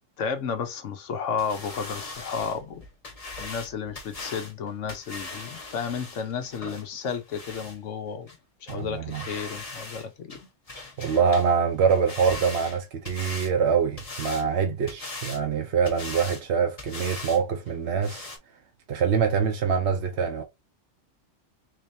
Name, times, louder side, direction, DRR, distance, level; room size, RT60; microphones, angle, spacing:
voice 1, 0.2-2.8 3.4-8.3 8.6-10.5, left 6 dB, 75° left, 1.2 m, -32 dB
sound 1, 1.4-7.8 8.3-8.4 8.7-8.8 9.1-10.0 10.3-11.5 11.8-13.5 14.0-14.5 14.9-15.4 15.8-16.4 16.8-17.4 17.7-17.8 18.0-18.4, left 2 dB, 30° left, 1.1 m, -39 dB
voice 2, 8.7-9.2 11.0-18.3 18.9-20.4, right 6 dB, 65° right, 1.0 m, -24 dB
3.9 x 3.3 x 2.7 m
omnidirectional pair, 1.3 m